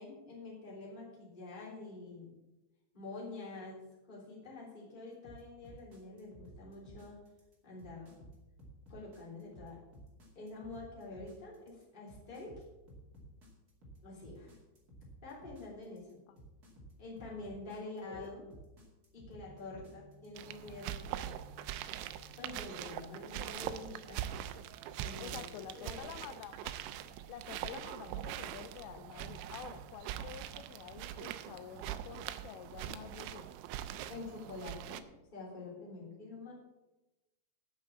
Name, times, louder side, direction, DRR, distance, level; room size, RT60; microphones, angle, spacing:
voice 1, 0.0-2.3 2.9-7.2 7.6-8.2 8.9-9.8 10.3-12.6 14.0-14.6 15.2-16.2 17.0-18.5 19.1-21.0 22.4-24.3 25.0-25.4 25.7-26.2 34.1-35.0 35.3-36.5, left 3 dB, 10° left, -5 dB, 2.5 m, -47 dB
sound 1, 5.2-21.0, right 1 dB, 40° right, 1.4 m, -55 dB
sound 2, 19.4-30.4, equal, 65° right, 2.7 m, -63 dB
sound 3, 20.4-35.0, right 11 dB, 85° right, 2.7 m, -43 dB
voice 2, 25.2-26.7 27.3-33.5, left 11 dB, 85° left, 10 dB, 2.5 m, -49 dB
9.6 x 7.4 x 7.2 m, 1.0 s
omnidirectional pair, 5.6 m